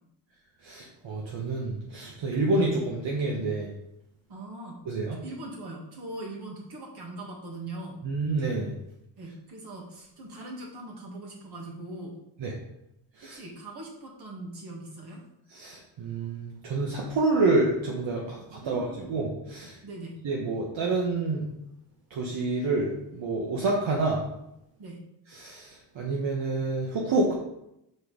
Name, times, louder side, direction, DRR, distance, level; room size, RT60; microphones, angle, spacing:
voice 1, 0.6-3.7 4.9-5.2 8.0-8.7 12.4-12.5 13.2-13.4 15.5-19.8 20.2-21.5 22.1-24.2 25.3-27.3, right 2 dB, 75° right, -2 dB, 1.4 m, -28 dB
voice 2, 4.3-4.8 5.2-8.0 9.2-12.1 13.2-15.2 18.5-19.1 19.8-20.2 24.8-25.0, right 2 dB, 55° right, -1 dB, 2.2 m, -41 dB
6.7 x 4.5 x 5.2 m, 0.82 s
cardioid pair, 120°, 46 cm